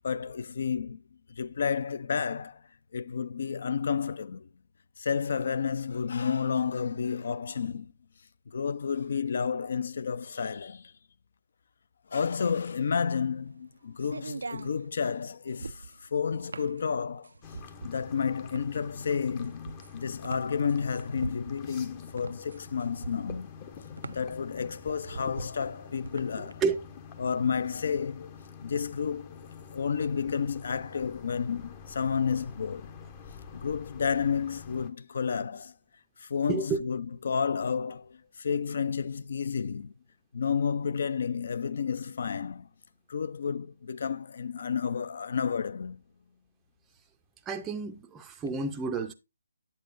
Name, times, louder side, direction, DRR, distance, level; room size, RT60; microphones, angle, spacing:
voice 1, 0.0-1.0 1.3-2.6 2.9-4.5 5.0-7.9 8.5-10.9 12.1-17.3 17.8-23.5 24.1-26.6 27.2-28.3 28.6-32.9 33.5-35.7 36.2-39.9 40.3-42.7 43.1-46.0, left 6 dB, 55° left, 0.5 m, -31 dB
sound 1, 12.6-26.5, right 4 dB, 70° right, 0.3 m, -43 dB
sound 2, 17.4-34.9, left 6 dB, 25° left, 0.7 m, -47 dB
voice 2, 26.4-26.8 36.5-36.8 47.5-49.1, right 5 dB, 10° right, 0.5 m, -31 dB
8.7 x 7.9 x 2.5 m
figure-of-eight pair, 150°, 0 cm